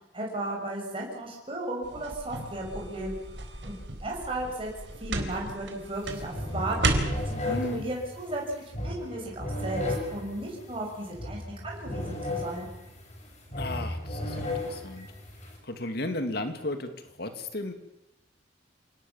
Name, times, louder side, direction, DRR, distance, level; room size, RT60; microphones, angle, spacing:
voice 1, 0.1-3.2 3.6-4.7 5.0-8.4 8.8-9.9 10.1-12.7, right 1 dB, 30° right, -1 dB, 6.1 m, -35 dB
sound 1, 1.8-7.3, right 2 dB, 85° right, 4.0 m, -33 dB
sound 2, 5.9-6.1 6.3-15.6, left 1 dB, 40° left, 6.8 m, -35 dB
voice 2, 7.4-7.9 13.6-15.1 15.6-16.9 17.2-17.7, left 1 dB, 60° left, 7 dB, 2.5 m, -34 dB
27.0 x 18.5 x 7.2 m, 0.91 s
head